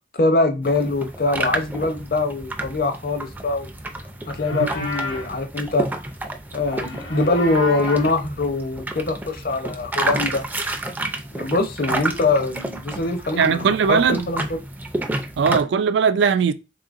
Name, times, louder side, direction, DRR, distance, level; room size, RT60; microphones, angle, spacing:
voice 1, 0.2-3.7 4.3-5.9 6.5-10.4 11.3-14.4, left 2 dB, 55° left, 0.6 m, -23 dB
sound 1, 0.6-15.6, right 2 dB, 10° right, 0.4 m, -30 dB
Livestock farm animals working animals, 4.2-5.4 6.7-8.2, left 2 dB, 90° left, 1.4 m, -31 dB
voice 2, 13.4-14.3 15.4-16.5, right 6 dB, 85° right, 0.4 m, -19 dB
3.7 x 3.7 x 2.5 m
head